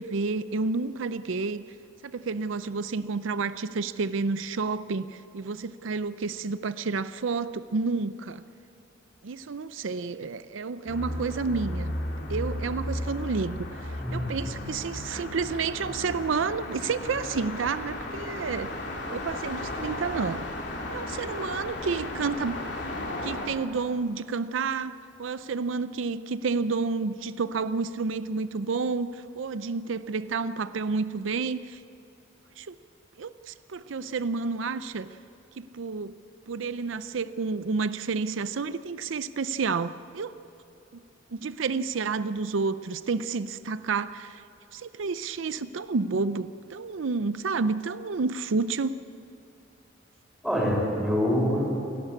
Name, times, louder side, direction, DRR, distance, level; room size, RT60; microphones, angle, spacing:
voice 1, 0.0-1.6 2.0-8.4 9.2-11.9 12.3-18.7 19.1-20.5 20.9-22.6 23.2-31.8 32.6-32.8 33.2-35.1 35.6-36.1 36.5-40.3 41.3-44.4 44.7-49.0, right 4 dB, 80° right, 13 dB, 0.5 m, -30 dB
sound 1, 10.9-23.5, left 1 dB, 60° left, 3.0 m, -35 dB
voice 2, 50.4-51.8, equal, ahead, -4 dB, 6.2 m, -25 dB
29.0 x 11.5 x 8.4 m, 2.8 s
head